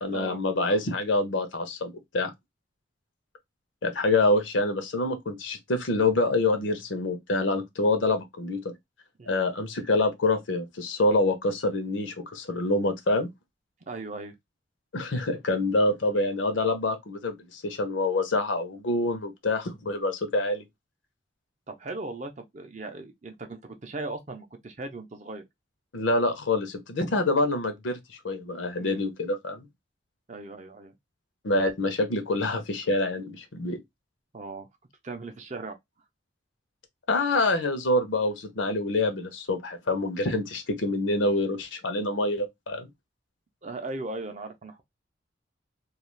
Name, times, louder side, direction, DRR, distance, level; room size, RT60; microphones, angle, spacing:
voice 1, 0.0-2.3 3.8-8.6 9.3-13.3 14.9-20.6 25.9-28.0 28.2-29.7 31.4-33.8 37.1-42.9, left 2 dB, 70° left, 0.7 m, -26 dB
voice 2, 13.9-14.3 21.7-25.4 28.8-29.0 30.3-30.9 34.3-34.7 35.0-35.8 43.6-44.8, right 2 dB, 35° right, 0.5 m, -38 dB
2.4 x 2.3 x 3.0 m
head